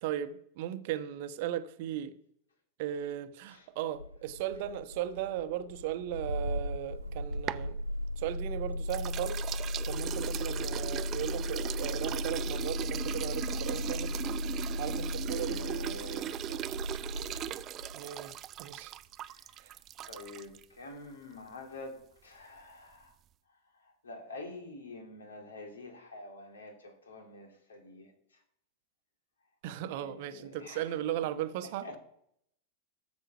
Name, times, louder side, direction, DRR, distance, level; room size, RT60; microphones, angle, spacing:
voice 1, 0.0-2.1 2.8-7.8 8.2-9.5 9.8-14.1 14.8-15.6 17.9-18.9 19.6-19.7 29.6-32.0, right 11 dB, 50° right, 0.9 m, -37 dB
Engine starting, 3.9-18.1, left 1 dB, 90° right, 0.3 m, -36 dB
sound 1, 6.9-8.5 8.9-20.6, right 11 dB, 30° right, 0.5 m, -39 dB
voice 2, 15.2-16.8 19.2-19.8 20.0-23.1 23.5-28.1 29.9-30.9 31.8-32.0, left 2 dB, 70° left, 3.1 m, -47 dB
13.5 x 7.5 x 5.9 m
figure-of-eight pair, 90°, 0 cm